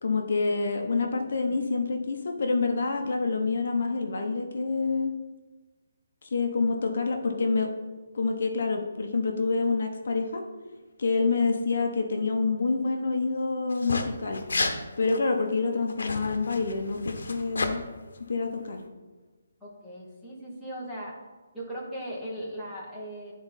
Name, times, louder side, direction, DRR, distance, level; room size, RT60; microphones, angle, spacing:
voice 1, 0.0-5.2 6.2-7.7 8.1-10.4 11.0-14.4 15.0-17.8 18.3-18.8, left 4 dB, 40° left, 3 dB, 0.8 m, -27 dB
sound 1, 13.7-14.0 14.3-14.8 15.0-15.2 15.9-17.7, left 3 dB, 70° left, 0.9 m, -31 dB
voice 2, 19.6-21.2 21.5-23.3, equal, ahead, -10 dB, 0.9 m, -38 dB
11.0 x 4.0 x 4.1 m, 1.3 s
hypercardioid pair, 180°, 0 cm